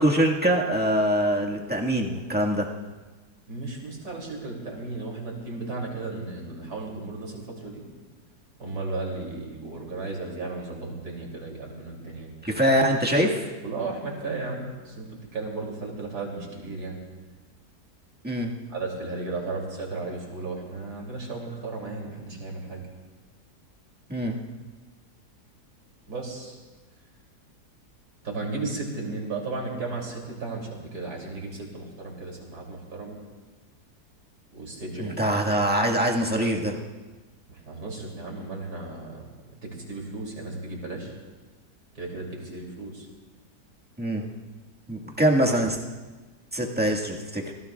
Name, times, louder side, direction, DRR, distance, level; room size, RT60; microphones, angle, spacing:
voice 1, 0.0-2.7 12.4-13.5 18.2-18.5 24.1-24.4 35.0-36.8 44.0-44.2 44.9-45.8 46.5-47.5, right 1 dB, 5° right, -2 dB, 1.6 m, -23 dB
voice 2, 3.5-7.8 8.6-12.3 13.6-17.0 18.7-22.9 26.1-26.6 28.2-33.2 34.5-35.4 37.5-39.3 39.6-41.1 42.0-43.1, right 3 dB, 75° right, -1 dB, 3.5 m, -35 dB
28.0 x 16.5 x 2.4 m, 1.3 s
omnidirectional pair, 1.7 m